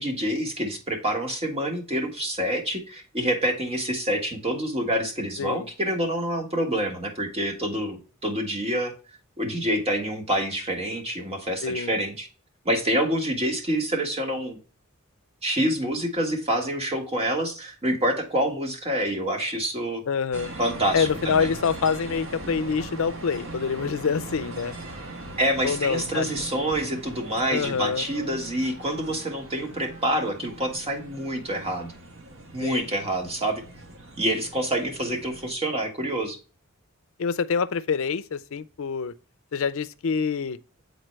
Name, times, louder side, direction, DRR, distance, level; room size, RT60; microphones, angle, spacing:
voice 1, 0.0-8.9 9.4-12.3 12.6-14.6 15.4-20.0 20.6-21.5 25.4-31.9 32.5-33.6 34.2-36.4, right 1 dB, 30° right, 1.6 m, -27 dB
voice 2, 11.6-12.0 20.1-20.5 20.9-24.8 25.6-26.3 27.5-28.0 32.6-32.9 37.2-39.1 39.5-40.6, left 6 dB, 70° left, 0.5 m, -26 dB
sound 1, 20.3-35.5, right 1 dB, 70° right, 1.5 m, -40 dB
9.1 x 4.0 x 3.2 m
head